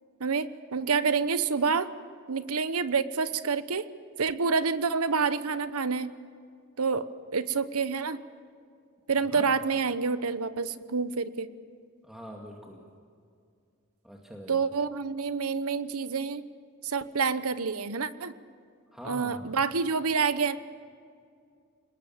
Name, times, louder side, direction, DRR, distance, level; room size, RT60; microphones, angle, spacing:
voice 1, 0.2-1.9 2.3-3.8 4.2-6.1 6.8-7.1 7.3-8.2 9.1-11.5 14.5-16.4 16.8-18.3 19.0-20.6, right 5 dB, 85° right, 13 dB, 0.9 m, -28 dB
voice 2, 9.2-9.5 12.0-12.9 14.0-14.7 18.9-19.5, equal, ahead, -1 dB, 2.1 m, -44 dB
29.0 x 20.0 x 7.4 m, 2.3 s
head